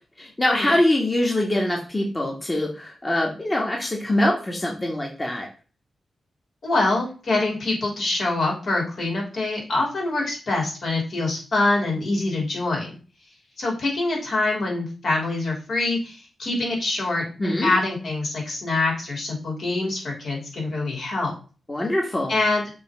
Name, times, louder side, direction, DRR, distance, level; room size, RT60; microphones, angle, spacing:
voice 1, 0.2-5.5 17.4-17.7 21.7-22.3, left 1 dB, 20° left, -1 dB, 1.4 m, -23 dB
voice 2, 6.6-12.9 13.6-21.3 22.3-22.6, left 2 dB, 65° left, -2 dB, 3.2 m, -25 dB
6.9 x 3.1 x 4.9 m, 0.36 s
cardioid pair, 90°, 0 cm